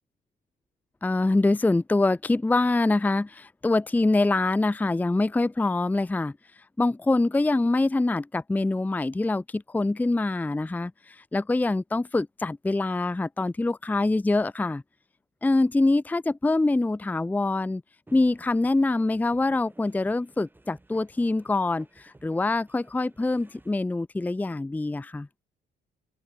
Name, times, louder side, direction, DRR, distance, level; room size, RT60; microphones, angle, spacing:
voice 1, 1.0-6.3 6.8-14.8 15.4-17.8 18.1-25.3, left 2 dB, 10° left, 0.6 m, -25 dB
sound 1, 18.1-23.7, right 2 dB, 10° right, 4.3 m, -55 dB
open air
cardioid pair, 105°, 17 cm